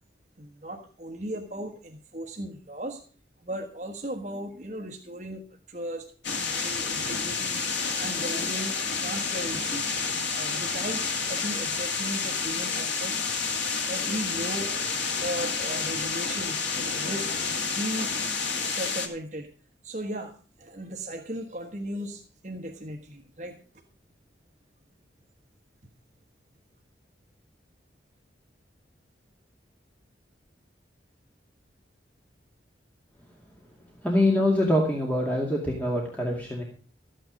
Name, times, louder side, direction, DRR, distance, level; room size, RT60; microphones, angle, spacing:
voice 1, 0.4-3.0 3.4-7.6 8.0-9.9 10.3-13.2 13.9-14.9 15.2-16.6 16.8-17.3 17.7-18.3 18.6-19.5 19.8-23.6, right 1 dB, 40° right, 2 dB, 1.4 m, -36 dB
sound 1, 6.2-19.1, left 5 dB, 75° left, 2.4 m, -29 dB
voice 2, 34.0-36.6, left 1 dB, 10° left, -2 dB, 2.3 m, -24 dB
14.0 x 9.1 x 5.2 m, 0.41 s
head